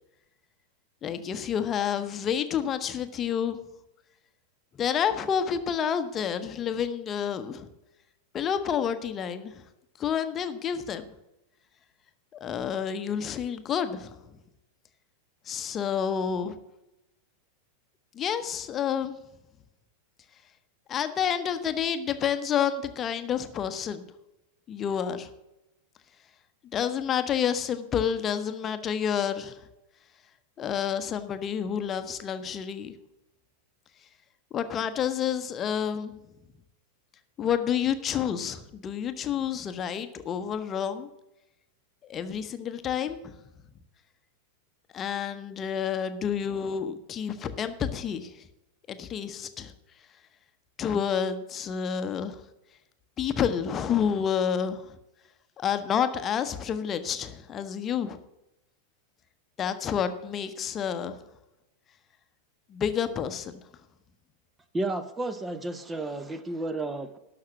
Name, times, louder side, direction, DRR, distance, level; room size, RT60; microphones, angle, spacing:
voice 1, 1.0-3.6 4.7-7.7 8.3-9.6 10.0-11.0 12.3-14.1 15.5-16.5 18.1-19.2 20.9-24.0 24.7-25.3 26.7-29.7 30.6-32.9 34.5-36.2 37.4-41.1 42.0-43.3 44.9-48.4 48.9-49.7 50.8-52.4 53.2-55.0 55.6-58.2 59.6-61.1 62.7-63.6, left 8 dB, 25° left, 9 dB, 0.9 m, -29 dB
voice 2, 64.7-67.2, right 2 dB, 15° right, 11 dB, 0.7 m, -32 dB
12.5 x 5.9 x 7.2 m, 0.91 s
figure-of-eight pair, 90°, 0 cm